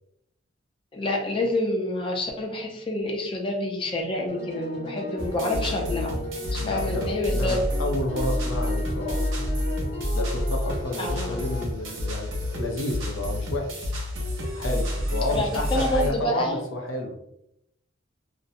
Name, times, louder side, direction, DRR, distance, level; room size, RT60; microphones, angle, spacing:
voice 1, 0.9-6.1 6.5-7.6 11.0-11.4 15.3-16.6, left 1 dB, 25° left, 1 dB, 0.4 m, -28 dB
sound 1, 4.3-11.7, left 2 dB, 60° left, 1.0 m, -35 dB
sound 2, 5.2-16.1, equal, 80° right, 0.7 m, -29 dB
voice 2, 6.6-9.3 10.1-13.9 14.5-17.2, left 2 dB, 85° left, 2 dB, 0.5 m, -31 dB
2.5 x 2.0 x 2.5 m, 0.79 s
head